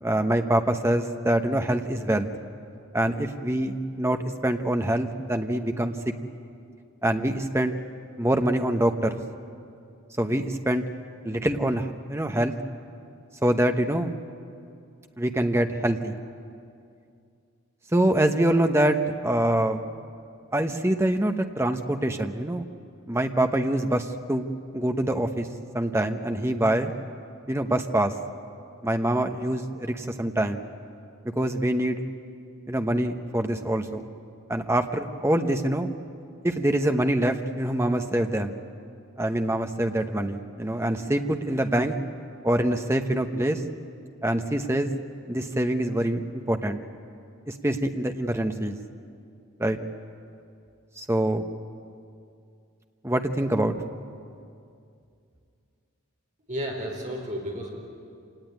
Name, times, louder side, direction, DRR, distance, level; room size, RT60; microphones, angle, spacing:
voice 1, 0.0-2.3 2.9-5.9 7.0-7.7 8.2-9.2 10.2-10.8 11.2-12.5 13.4-14.1 15.2-16.1 17.9-19.0 19.2-19.8 20.5-22.6 23.1-24.5 24.7-25.5 25.7-26.9 27.5-28.1 28.8-30.6 31.3-32.0 32.7-34.1 34.5-35.9 36.4-38.5 39.2-41.9 42.4-43.6 44.2-44.9 45.3-46.8 47.5-48.8 49.6-49.8 51.0-51.4 53.0-53.7, right 1 dB, 10° right, 6 dB, 0.9 m, -25 dB
voice 2, 56.5-57.7, equal, 35° right, 0 dB, 4.5 m, -32 dB
26.5 x 18.0 x 9.5 m, 2.4 s
head